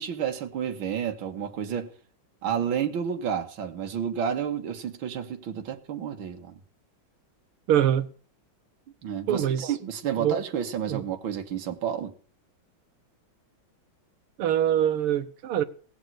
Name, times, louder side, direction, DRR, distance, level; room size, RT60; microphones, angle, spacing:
voice 1, 0.0-1.9 2.4-6.6 9.0-12.1, right 8 dB, 70° right, 2.3 m, -30 dB
voice 2, 7.7-8.1 9.3-9.7 10.2-10.4 10.9-11.0 14.4-15.6, right 10 dB, 85° right, 1.9 m, -24 dB
18.0 x 7.2 x 9.2 m
omnidirectional pair, 2.3 m